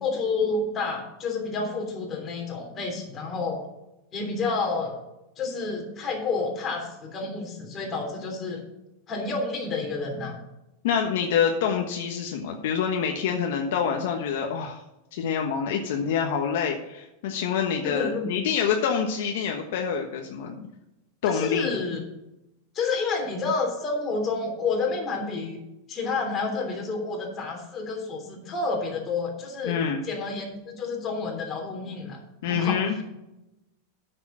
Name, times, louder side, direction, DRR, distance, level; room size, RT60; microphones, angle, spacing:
voice 1, 0.0-3.6 4.1-5.0 5.4-8.6 9.1-10.4 17.8-18.3 21.3-22.0 22.7-25.6 25.9-29.8 30.0-33.0, left 4 dB, 25° left, 1 dB, 3.2 m, -29 dB
voice 2, 10.8-14.8 15.1-20.7 21.2-21.8 29.6-30.0 32.4-33.0, left 7 dB, 70° left, 3 dB, 1.2 m, -26 dB
8.9 x 6.8 x 6.2 m, 0.92 s
supercardioid pair, 135°, 0 cm